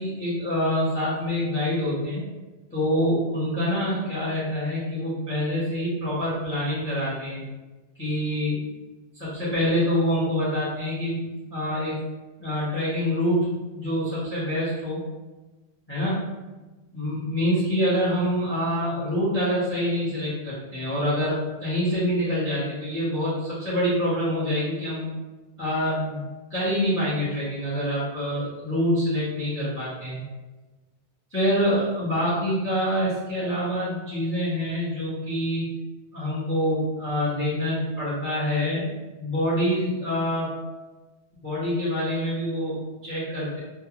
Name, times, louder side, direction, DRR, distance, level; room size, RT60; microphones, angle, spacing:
voice 1, 0.0-2.2 2.7-7.4 8.0-8.6 9.1-11.9 12.4-15.0 15.9-16.3 16.9-25.1 25.6-26.2 26.5-30.2 31.3-35.8 36.1-40.5 41.4-43.6, equal, 15° left, -10 dB, 0.6 m, -26 dB
2.3 x 2.2 x 2.9 m, 1.2 s
omnidirectional pair, 1.1 m